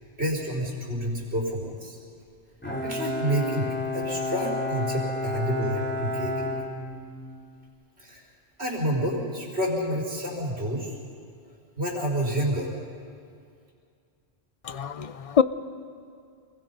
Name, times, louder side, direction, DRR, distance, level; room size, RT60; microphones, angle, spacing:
voice 1, 0.2-2.0 2.8-6.5 8.0-8.3 8.6-10.9 11.8-12.7, right 1 dB, 70° right, -1 dB, 4.8 m, -29 dB
Bowed string instrument, 2.6-7.5, left 2 dB, 10° left, 3.6 m, -31 dB
voice 2, 14.6-15.4, left 7 dB, 40° left, 13 dB, 0.6 m, -24 dB
27.5 x 22.0 x 5.4 m, 2.3 s
omnidirectional pair, 1.1 m